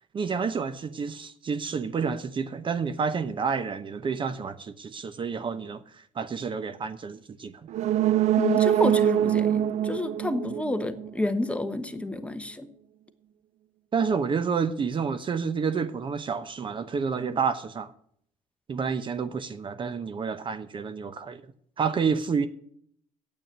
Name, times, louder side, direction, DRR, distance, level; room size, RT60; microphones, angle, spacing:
voice 1, 0.1-5.8 6.2-7.6 13.9-17.9 18.7-21.4 21.8-22.5, right 5 dB, 35° right, 0.8 m, -29 dB
Devil's Chair, 7.7-11.4 11.7-11.8, right 11 dB, 55° right, 0.5 m, -24 dB
voice 2, 8.4-12.7, left 2 dB, 10° left, 1.1 m, -29 dB
9.1 x 8.6 x 7.2 m
cardioid pair, 95°, 14 cm